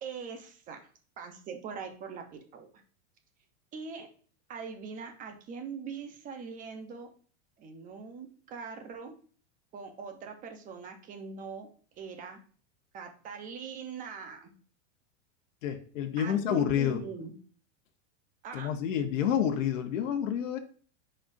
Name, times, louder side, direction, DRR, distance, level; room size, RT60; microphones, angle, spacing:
voice 1, 0.0-0.9 1.2-2.8 3.7-4.1 4.5-7.1 7.6-9.1 9.7-11.7 12.0-12.4 12.9-14.5 16.2-17.3 18.4-18.7, right 5 dB, 20° right, 5 dB, 0.8 m, -42 dB
voice 2, 15.6-17.1 18.5-20.6, left 9 dB, 80° left, 5 dB, 1.0 m, -29 dB
10.5 x 4.3 x 2.6 m, 0.43 s
supercardioid pair, 165°, 37 cm